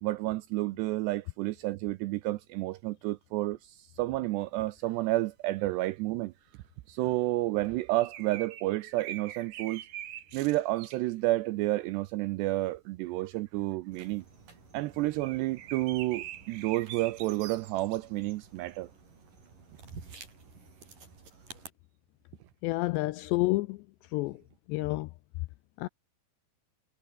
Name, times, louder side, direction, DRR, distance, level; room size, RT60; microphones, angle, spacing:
voice 1, 0.0-6.3 6.9-9.8 10.3-14.2 14.7-18.9, right 18 dB, 85° right, 2.5 m, -30 dB
sound 1, 4.8-5.1 5.6-5.8 6.5-6.6 7.0-7.2 7.7-11.1 13.1-13.7 14.1-14.2 14.9-18.3, right 12 dB, 65° right, 3.7 m, -44 dB
sound 2, 13.9-21.7, right 4 dB, 45° right, 7.2 m, -52 dB
voice 2, 22.6-23.8 24.1-24.4 24.7-25.1 25.8-25.9, left 21 dB, 85° left, 2.5 m, -29 dB
omnidirectional pair, 5.5 m